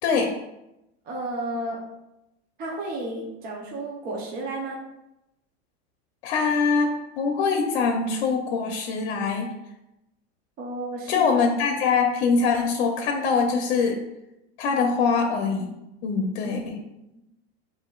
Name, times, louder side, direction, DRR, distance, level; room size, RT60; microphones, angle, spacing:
voice 1, 0.0-0.3 6.2-6.9 7.2-9.5 11.1-14.0 14.6-15.7 16.0-16.8, left 5 dB, 65° left, 3 dB, 0.7 m, -23 dB
voice 2, 1.1-1.8 2.6-4.8 10.6-11.3 16.4-16.6 17.1-17.2, right 2 dB, 30° right, -2 dB, 0.7 m, -32 dB
6.7 x 2.6 x 2.4 m, 0.90 s
supercardioid pair, 145°, 32 cm